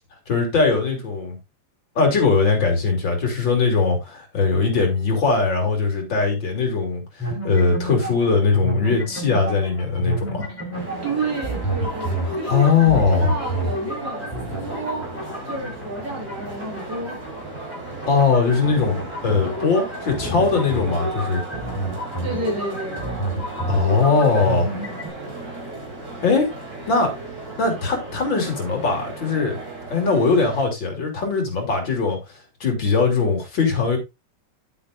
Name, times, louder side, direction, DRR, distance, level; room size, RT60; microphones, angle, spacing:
voice 1, 0.3-1.4 2.0-10.5 12.3-13.4 18.1-21.4 23.7-24.7 26.2-26.5 26.9-27.1 27.6-29.6 29.9-34.0, left 4 dB, 70° left, 3.8 m, -20 dB
sound 1, 7.2-25.1, right 1 dB, 5° left, 4.1 m, -30 dB
sound 2, 10.7-30.6, right 2 dB, 40° right, 5.3 m, -35 dB
voice 2, 11.0-15.1 15.5-17.2 22.2-23.2, right 3 dB, 55° right, 5.7 m, -30 dB
10.0 x 8.4 x 2.5 m
omnidirectional pair, 2.2 m